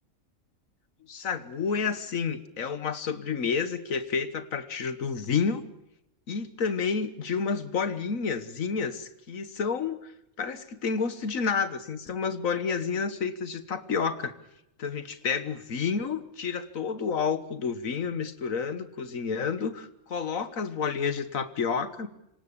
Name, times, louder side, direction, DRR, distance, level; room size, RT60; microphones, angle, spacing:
voice 1, 1.1-5.6 6.3-10.1 10.4-14.3 14.8-22.1, left 5 dB, 90° left, 11 dB, 1.7 m, -30 dB
26.5 x 18.0 x 8.5 m, 0.84 s
omnidirectional pair, 1.4 m